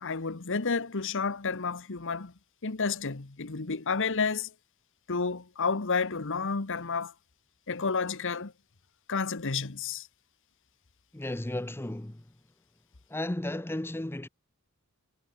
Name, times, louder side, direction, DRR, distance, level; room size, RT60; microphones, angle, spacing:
voice 1, 0.0-2.3 2.6-4.5 5.1-7.1 7.7-8.5 9.1-10.1, left 4 dB, 60° left, 1.2 m, -30 dB
voice 2, 11.1-12.2 13.1-14.3, left 1 dB, 10° left, 0.6 m, -34 dB
head